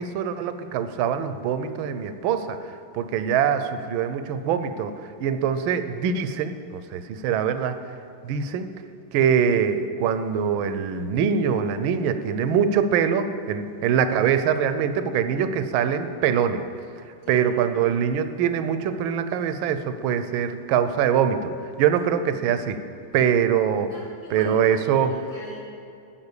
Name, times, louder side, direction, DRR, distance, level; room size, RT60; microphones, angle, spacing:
voice 1, 0.0-2.6 2.9-4.9 5.2-7.8 8.2-8.7 9.1-16.6 17.3-21.5 21.8-22.8 23.1-23.9 24.3-25.2, right 8 dB, 80° right, 10 dB, 1.4 m, -23 dB
voice 2, 23.9-24.6 25.1-25.7, left 1 dB, 65° left, -7 dB, 3.7 m, -41 dB
12.0 x 5.9 x 8.1 m, 2.5 s
omnidirectional pair, 2.2 m